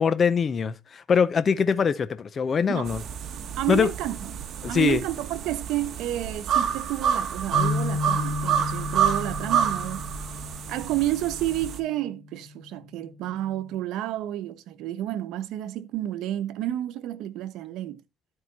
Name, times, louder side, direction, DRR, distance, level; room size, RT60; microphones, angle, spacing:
voice 1, 0.0-3.0 3.7-3.9 4.6-5.0, left 6 dB, 30° left, 0.6 m, -23 dB
sound 1, 2.9-11.8, right 8 dB, 45° right, 1.2 m, -28 dB
voice 2, 3.6-4.2 4.7-10.0 10.7-18.0, right 13 dB, 75° right, 0.9 m, -30 dB
sound 2, 7.5-11.8 12.3-12.5 13.3-13.8, left 3 dB, 90° left, 2.8 m, -33 dB
12.0 x 4.8 x 4.1 m
cardioid pair, 140°, 0 cm